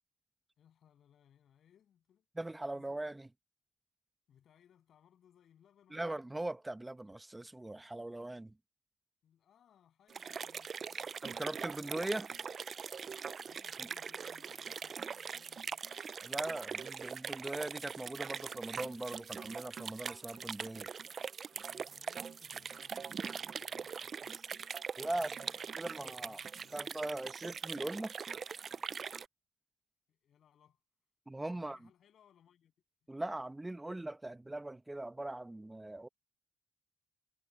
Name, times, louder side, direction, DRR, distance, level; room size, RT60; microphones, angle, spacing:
voice 1, 0.6-2.3 2.7-2.9 4.3-6.2 9.2-11.2 13.5-16.1 21.5-24.5 25.0-26.8 30.1-30.8 31.5-32.7, left 9 dB, 65° left, 7.9 m, -67 dB
voice 2, 2.4-3.3 5.9-8.5 11.2-12.3 13.8-13.9 16.2-20.9 25.0-25.3 25.8-26.4 26.7-28.1 31.3-31.8 33.1-36.1, right 2 dB, 10° right, 1.1 m, -40 dB
sound 1, 10.1-29.3, right 6 dB, 45° right, 0.4 m, -42 dB
cardioid pair, 90°, 0 cm